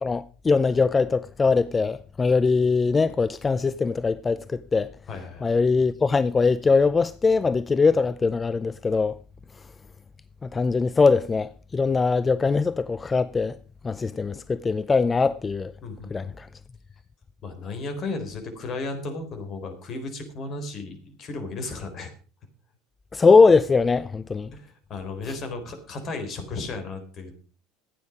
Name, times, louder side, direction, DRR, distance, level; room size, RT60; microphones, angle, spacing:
voice 1, 0.0-4.9 5.4-9.2 10.4-13.5 13.8-15.7 16.1-16.5 23.1-24.5, left 4 dB, 20° left, 0.5 m, -21 dB
voice 2, 5.1-5.4 15.8-16.3 17.4-22.1 24.5-27.3, left 3 dB, 40° left, 4.1 m, -34 dB
15.0 x 9.4 x 5.1 m
hypercardioid pair, 70°, 0 cm